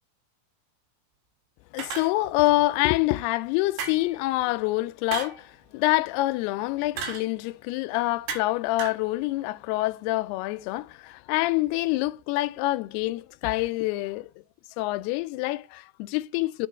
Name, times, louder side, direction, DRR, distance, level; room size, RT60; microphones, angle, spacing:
voice 1, 1.7-14.3 14.8-16.7, left 18 dB, 85° left, 2.5 m, -26 dB
sound 1, 1.8-2.5 3.8-4.2 5.1-5.4 7.0-7.3 8.3-8.5 8.8-9.0, right 5 dB, 80° right, 3.8 m, -34 dB
9.1 x 4.9 x 4.4 m
omnidirectional pair, 4.7 m